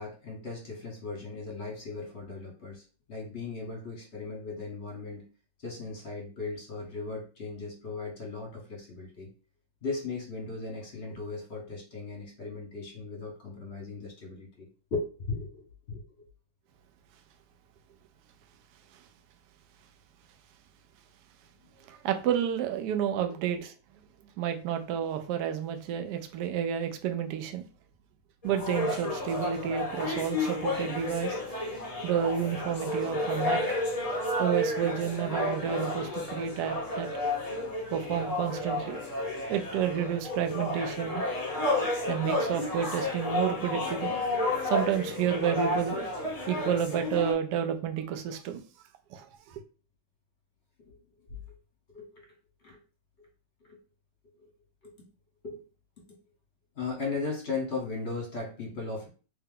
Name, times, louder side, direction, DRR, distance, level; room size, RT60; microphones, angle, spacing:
voice 1, 0.0-5.3 5.6-9.3 9.8-16.2 23.2-23.4 50.8-51.0 51.3-51.4 51.9-52.3 52.6-52.8 53.2-53.3 53.6-53.8 54.4-54.5 54.8-54.9 55.4-55.6 56.7-59.1, left 4 dB, 40° left, -1 dB, 1.2 m, -37 dB
voice 2, 21.9-23.7 24.4-27.7 28.4-31.4 32.0-33.6 34.4-37.1 37.9-39.0 39.5-41.2 42.1-44.2 44.6-46.1 46.5-48.6 49.1-49.6, right 9 dB, 75° right, 7 dB, 0.9 m, -30 dB
sound 1, 28.4-47.3, left 2 dB, 85° left, 0.3 m, -31 dB
3.3 x 2.8 x 3.7 m, 0.36 s
omnidirectional pair, 2.3 m